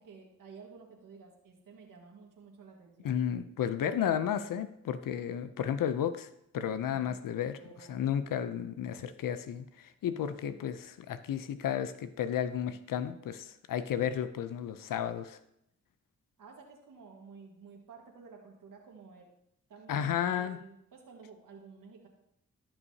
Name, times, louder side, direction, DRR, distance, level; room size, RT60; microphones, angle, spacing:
voice 1, 0.0-3.2 6.9-7.2 7.6-8.3 16.4-19.3 19.7-22.1, right 5 dB, 80° right, 0 dB, 1.7 m, -53 dB
voice 2, 3.0-6.3 6.5-7.6 7.9-15.4 19.9-20.6, left 9 dB, 80° left, 12 dB, 0.6 m, -33 dB
15.0 x 5.8 x 2.8 m, 0.78 s
cardioid pair, 55°, 32 cm